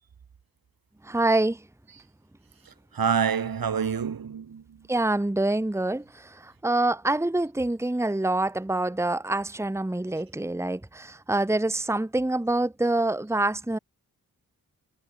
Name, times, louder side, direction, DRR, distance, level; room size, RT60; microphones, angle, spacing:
voice 1, 1.0-1.6 4.9-13.8, right 2 dB, 10° right, 1.4 m, -26 dB
voice 2, 2.7-4.9, right 7 dB, 75° right, 3.6 m, -27 dB
wide cardioid pair, 115°, 35 cm